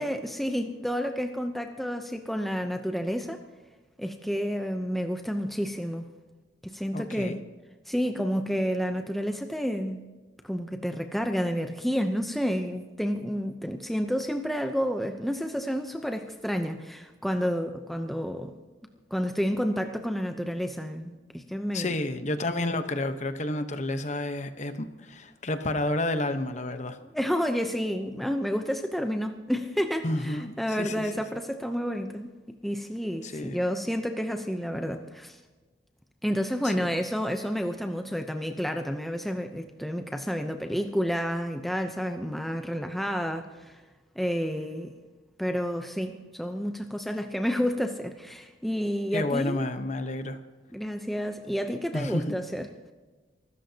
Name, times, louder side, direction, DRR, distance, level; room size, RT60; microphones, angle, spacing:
voice 1, 0.0-3.4 4.0-6.0 6.6-7.4 7.9-10.0 10.4-18.5 19.1-21.9 27.1-35.4 36.2-43.8 44.2-44.9 45.4-49.7 50.7-52.7, equal, ahead, 5 dB, 0.7 m, -30 dB
voice 2, 6.9-7.4 21.7-27.0 30.0-31.1 33.2-33.6 36.6-36.9 49.1-50.4 51.9-52.4, left 1 dB, 40° left, 9 dB, 1.0 m, -30 dB
25.0 x 13.5 x 2.8 m, 1.3 s
head